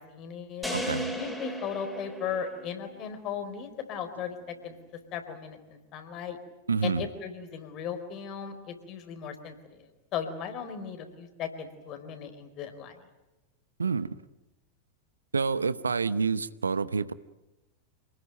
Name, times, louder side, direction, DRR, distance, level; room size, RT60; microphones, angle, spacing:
voice 1, 0.1-0.7 1.1-4.8 5.1-6.4 6.8-9.8 10.1-13.0, left 7 dB, 35° left, 8 dB, 4.1 m, -37 dB
sound 1, 0.6-2.9, equal, 5° left, 4.4 m, -35 dB
voice 2, 0.7-1.1 6.7-7.0 13.8-14.2 15.3-17.1, right 5 dB, 75° right, 17 dB, 0.9 m, -28 dB
28.0 x 20.0 x 9.2 m, 1.0 s
figure-of-eight pair, 90°, 0 cm